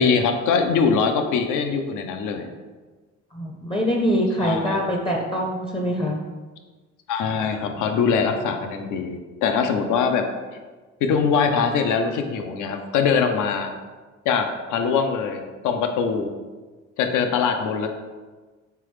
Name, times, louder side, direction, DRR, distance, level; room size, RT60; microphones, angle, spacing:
voice 1, 0.0-2.5 4.4-4.9 7.1-10.2 11.0-13.7 14.3-16.3 17.0-17.9, left 6 dB, 80° left, 6 dB, 0.5 m, -22 dB
voice 2, 3.3-6.2, equal, 15° left, 0 dB, 0.5 m, -24 dB
3.8 x 3.4 x 3.2 m, 1.3 s
cardioid pair, 90°, 30 cm